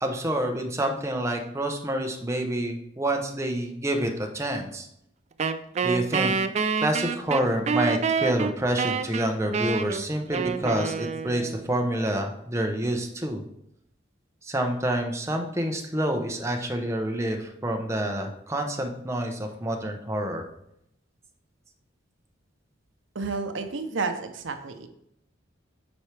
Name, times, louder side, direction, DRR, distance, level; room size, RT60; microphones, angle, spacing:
voice 1, 0.0-4.9 5.8-6.3 6.8-13.4 14.4-20.5, right 1 dB, 15° right, 3 dB, 0.7 m, -28 dB
Wind instrument woodwind instrument, 5.4-11.7, right 5 dB, 35° right, 0.3 m, -27 dB
voice 2, 23.1-24.9, right 4 dB, 75° right, 7 dB, 0.7 m, -31 dB
8.0 x 4.4 x 3.3 m, 0.76 s
head